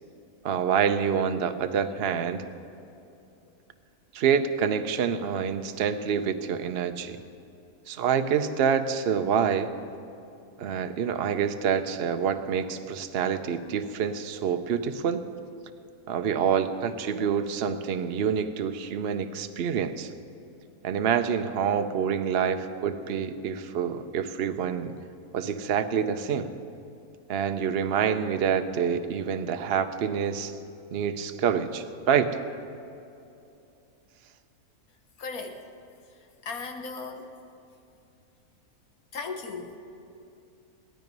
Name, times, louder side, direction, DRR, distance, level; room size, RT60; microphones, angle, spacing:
voice 1, 0.4-2.4 4.1-7.2 7.9-9.7 10.6-15.2 16.1-20.1 20.8-24.9 25.3-26.5 27.3-30.5 30.9-32.3, right 7 dB, 55° right, 9 dB, 0.8 m, -27 dB
voice 2, 35.2-35.6 36.4-37.3 39.1-39.8, left 4 dB, 75° left, 5 dB, 1.6 m, -36 dB
17.0 x 12.5 x 5.3 m, 2.8 s
omnidirectional pair, 1.5 m